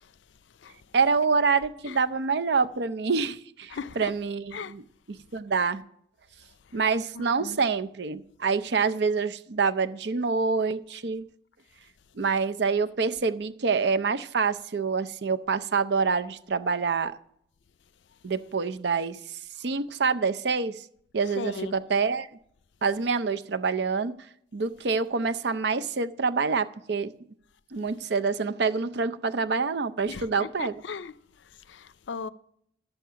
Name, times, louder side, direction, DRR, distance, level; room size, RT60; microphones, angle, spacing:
voice 1, 0.9-5.8 6.7-11.2 12.2-17.2 18.2-20.8 21.1-22.3 22.8-24.2 24.5-27.1 27.7-30.8, right 5 dB, 65° right, 0.6 m, -26 dB
voice 2, 3.7-4.1 4.5-4.7 7.1-7.6 21.4-21.8 30.1-31.1 31.7-32.3, left 5 dB, 80° left, 0.5 m, -37 dB
11.0 x 7.8 x 5.7 m
head